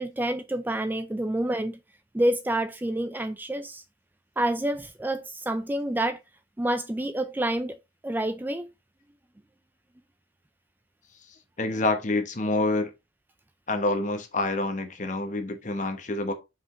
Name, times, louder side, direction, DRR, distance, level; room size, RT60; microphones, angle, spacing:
voice 1, 0.0-1.8 2.1-3.8 4.4-6.2 6.6-7.8 8.0-8.7, right 1 dB, 10° right, 0.3 m, -28 dB
voice 2, 11.6-12.9 13.7-16.3, left 2 dB, 40° left, 1.2 m, -27 dB
5.9 x 4.9 x 3.8 m
head